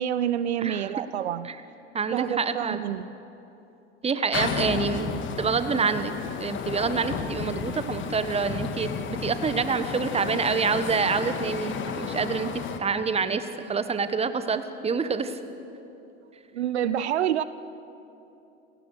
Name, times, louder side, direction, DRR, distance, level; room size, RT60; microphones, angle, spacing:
voice 1, 0.0-1.5 2.1-3.1 16.5-17.4, right 10 dB, 70° right, 15 dB, 0.7 m, -27 dB
voice 2, 1.9-2.8 4.0-5.1 5.4-6.1 6.4-12.5 12.8-15.4, right 5 dB, 20° right, 11 dB, 1.4 m, -27 dB
sound 1, 4.3-12.8, left 6 dB, 35° left, 1.8 m, -32 dB
28.5 x 18.0 x 6.6 m, 3.0 s
figure-of-eight pair, 75°, 34 cm